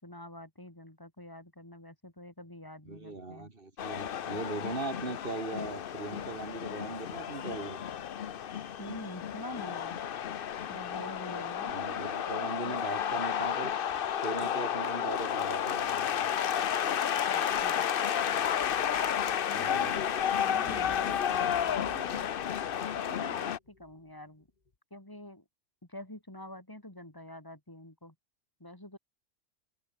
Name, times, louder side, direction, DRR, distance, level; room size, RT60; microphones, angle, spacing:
voice 1, 0.0-3.5 8.8-10.0 10.7-12.9 17.3-17.8 19.5-22.3 22.9-24.5 24.9-25.4 25.9-28.1 28.6-29.0, left 1 dB, 15° left, 4.0 m, -46 dB
voice 2, 2.9-7.8 11.7-15.9 19.5-20.0, right 3 dB, 45° right, 2.6 m, -39 dB
sound 1, 3.8-23.6, left 9 dB, 50° left, 0.8 m, -32 dB
sound 2, 18.4-24.1 24.4-24.7, left 3 dB, 35° left, 1.7 m, -52 dB
omnidirectional pair, 1.3 m